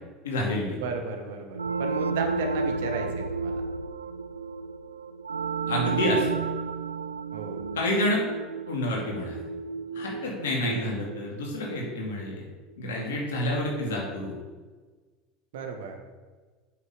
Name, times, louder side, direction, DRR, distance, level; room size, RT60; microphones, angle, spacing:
voice 1, 0.2-0.8 5.7-6.3 7.7-8.2 8.7-9.4 9.9-12.4 12.8-14.4, left 1 dB, 65° left, -2 dB, 2.5 m, -28 dB
voice 2, 0.8-3.6 7.3-7.7 10.6-11.0 15.5-16.0, right 4 dB, 60° right, 4 dB, 1.4 m, -34 dB
sound 1, 1.5-12.0, right 4 dB, 80° right, 0.3 m, -32 dB
8.4 x 6.5 x 5.1 m, 1.4 s
figure-of-eight pair, 70°, 0 cm